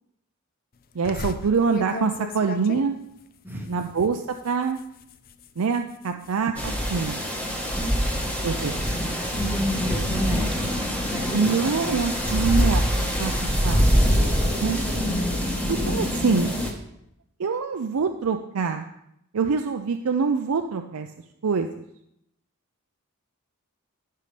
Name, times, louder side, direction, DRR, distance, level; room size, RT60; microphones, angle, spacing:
sound 1, 1.0-6.4 6.8-7.2 7.6-9.6 10.1-12.3, left 3 dB, 45° left, 0.5 m, -39 dB
voice 1, 1.0-2.9 3.7-4.8 5.6-7.2 8.4-8.7 11.3-14.1 14.6-14.8 15.7-16.5 17.4-18.9 19.3-21.1 21.4-21.8, right 5 dB, 85° right, 5 dB, 0.5 m, -25 dB
sound 2, 6.6-16.7, equal, 5° left, 1.2 m, -24 dB
voice 2, 9.0-12.4 14.2-14.4 15.0-15.1, equal, 10° right, 2 dB, 0.8 m, -33 dB
14.5 x 5.7 x 3.3 m, 0.78 s
head